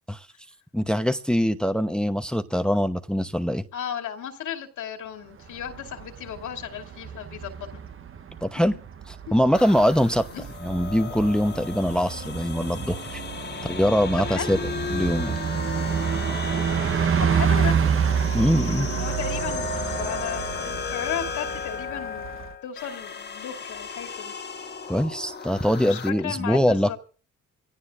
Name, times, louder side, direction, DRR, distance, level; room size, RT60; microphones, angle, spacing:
voice 1, 0.7-3.6 8.4-8.8 9.1-10.3 10.6-13.2 13.6-14.6 14.9-15.4 18.3-18.9 24.9-27.0, equal, 5° left, 10 dB, 0.9 m, -23 dB
voice 2, 3.7-7.8 8.6-8.8 10.3-10.4 14.3-14.6 17.2-17.8 18.8-22.4 22.6-24.3 25.8-27.0, left 9 dB, 80° left, 2 dB, 2.6 m, -34 dB
Bus, 5.4-22.5, right 7 dB, 45° right, 1.0 m, -29 dB
sound 1, 9.5-26.1, left 5 dB, 35° left, 1.3 m, -35 dB
24.5 x 17.0 x 2.5 m, 0.39 s
cardioid pair, 90°, 30 cm